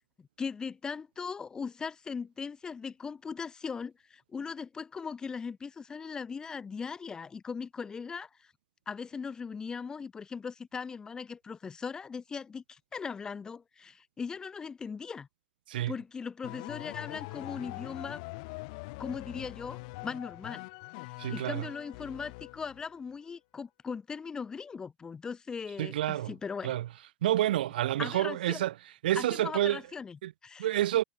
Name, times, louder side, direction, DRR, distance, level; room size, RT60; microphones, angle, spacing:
voice 1, 0.2-8.3 8.9-15.3 15.9-18.2 19.0-20.7 21.3-26.7 28.0-28.6 29.2-30.7, left 5 dB, 15° left, 2.2 m, -39 dB
sound 1, 16.4-22.9, left 27 dB, 50° left, 4.0 m, -43 dB
voice 2, 21.2-21.7 25.8-26.3 26.6-26.9 27.2-28.7 29.0-29.8 30.2-30.3 30.6-31.0, right 13 dB, 75° right, 0.8 m, -28 dB
supercardioid pair, 145°, 5 cm